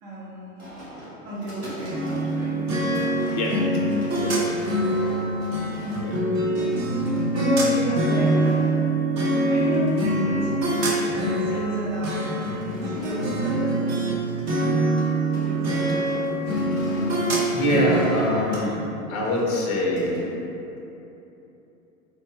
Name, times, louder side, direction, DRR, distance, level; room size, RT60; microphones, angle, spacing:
voice 1, 0.0-0.6 1.2-2.6 5.7-6.2 7.3-8.9 9.5-12.4 13.0-14.1 15.3-16.5, right 1 dB, 55° right, -7 dB, 1.0 m, -32 dB
sound 1, 0.6-6.2 6.6-7.3 7.9-8.7 9.3-9.6 9.8-9.9 10.5-11.4 11.9-14.6 14.9-15.1 15.3-18.3 19.2-20.3, equal, 85° right, 1.3 m, -41 dB
sound 2, 1.9-14.1 14.5-18.6, right 1 dB, 30° right, 0.5 m, -24 dB
voice 2, 3.3-3.8 4.1-4.4 6.0-6.2 17.5-18.8 19.1-20.3, equal, 25° left, -3 dB, 0.4 m, -24 dB
3.5 x 2.0 x 3.2 m, 3.0 s
figure-of-eight pair, 90°, 42 cm